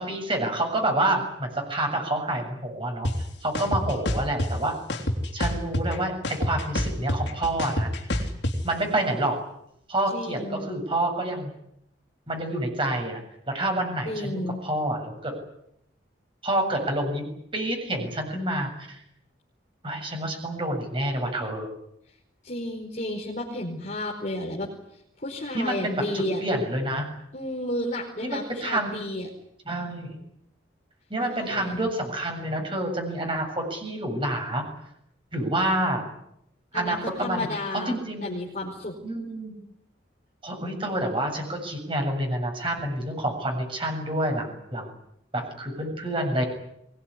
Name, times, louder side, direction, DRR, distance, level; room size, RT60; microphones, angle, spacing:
voice 1, 0.0-3.1 3.4-4.8 5.3-8.3 8.6-9.4 9.9-11.5 12.3-13.2 13.5-15.4 16.4-17.3 17.5-19.0 19.8-21.7 25.5-26.0 26.4-27.1 28.2-28.9 29.7-30.2 31.1-34.6 35.3-36.1 36.7-38.3 39.0-39.6 40.4-44.9 45.3-46.5, right 1 dB, 25° right, 3 dB, 7.4 m, -28 dB
sound 1, 3.0-3.1 3.5-4.5 4.9-6.0 6.2-8.5, left 1 dB, 65° left, 3.7 m, -26 dB
voice 2, 10.1-10.7 14.1-14.6 22.4-24.7 25.2-26.4 27.3-29.3 31.3-31.8 36.7-38.9, left 1 dB, 40° left, -3 dB, 4.7 m, -32 dB
23.5 x 20.5 x 9.9 m, 0.77 s
head